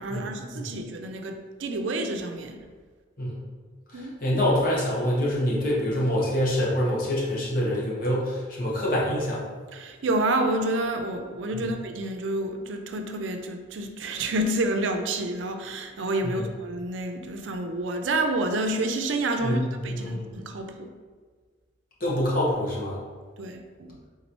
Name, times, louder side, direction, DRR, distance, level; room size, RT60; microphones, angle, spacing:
voice 1, 0.0-2.6 3.9-4.4 9.7-20.9 23.4-24.0, right 2 dB, 80° right, 5 dB, 0.5 m, -29 dB
voice 2, 3.9-9.4 11.5-11.7 16.2-16.5 19.4-20.3 22.0-23.0, equal, 50° left, -5 dB, 1.1 m, -26 dB
4.1 x 3.9 x 2.9 m, 1.5 s
head